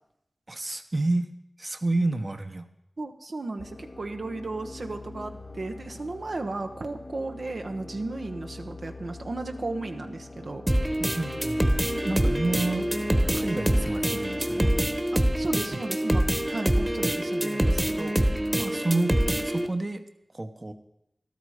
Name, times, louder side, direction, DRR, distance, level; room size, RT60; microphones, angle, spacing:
voice 1, 0.5-1.3 1.6-2.7 11.1-12.9 13.3-14.7 18.6-20.0 20.3-20.7, right 2 dB, 40° right, 7 dB, 1.0 m, -29 dB
voice 2, 3.0-10.6 15.1-18.2, right 2 dB, 65° right, 4 dB, 1.0 m, -35 dB
sound 1, 3.6-15.6, left 2 dB, 65° left, 2.0 m, -42 dB
sound 2, 10.7-19.7, right 1 dB, 15° right, 1.3 m, -25 dB
13.5 x 12.0 x 4.9 m, 0.82 s
cardioid pair, 40°, 0 cm